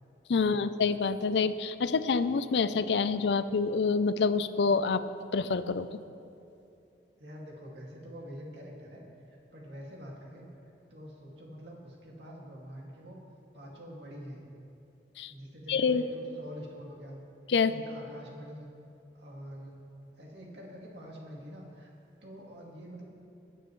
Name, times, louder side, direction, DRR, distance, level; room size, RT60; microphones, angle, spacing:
voice 1, 0.3-5.0 5.3-5.9 15.2-15.3 15.7-16.0 17.5-17.7, left 5 dB, 80° left, 13 dB, 0.5 m, -27 dB
voice 2, 7.2-9.0 9.3-10.5 10.9-13.2 13.5-14.5 15.3-17.2 17.6-18.7 19.1-19.8 20.1-21.9 22.2-23.0, equal, 85° right, -2 dB, 2.2 m, -45 dB
21.0 x 9.0 x 3.2 m, 2.6 s
head